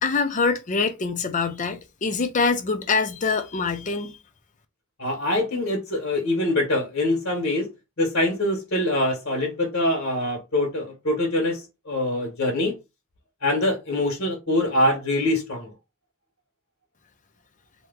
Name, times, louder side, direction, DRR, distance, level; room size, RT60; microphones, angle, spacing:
voice 1, 0.0-4.2, left 4 dB, 40° left, 0.5 m, -24 dB
voice 2, 5.0-7.7 8.0-12.8 13.4-15.7, left 1 dB, 60° left, 1.2 m, -24 dB
3.0 x 2.1 x 3.5 m
head